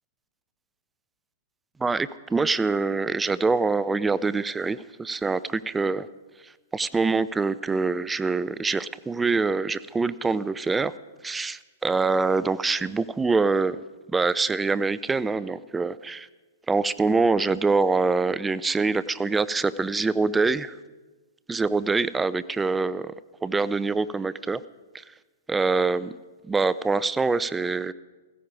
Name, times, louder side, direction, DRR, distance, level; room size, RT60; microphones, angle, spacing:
voice 1, 1.8-6.1 6.4-10.9 11.2-13.8 14.1-16.3 16.7-20.7 21.5-23.1 23.4-24.6 24.9-25.0 25.5-26.2 26.5-27.9, right 4 dB, 10° right, 17 dB, 0.5 m, -25 dB
16.0 x 14.5 x 5.0 m, 1.3 s
hypercardioid pair, 115°, 0 cm